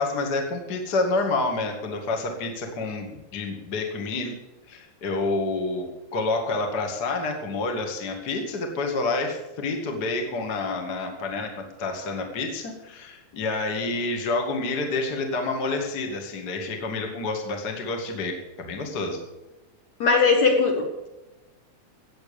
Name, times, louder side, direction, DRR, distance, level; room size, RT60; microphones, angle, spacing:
voice 1, 0.0-4.4 4.7-19.2, left 3 dB, 30° left, 3 dB, 2.1 m, -28 dB
voice 2, 20.0-21.1, left 4 dB, 55° left, 1 dB, 2.7 m, -20 dB
17.5 x 7.7 x 6.9 m, 1.0 s
omnidirectional pair, 4.5 m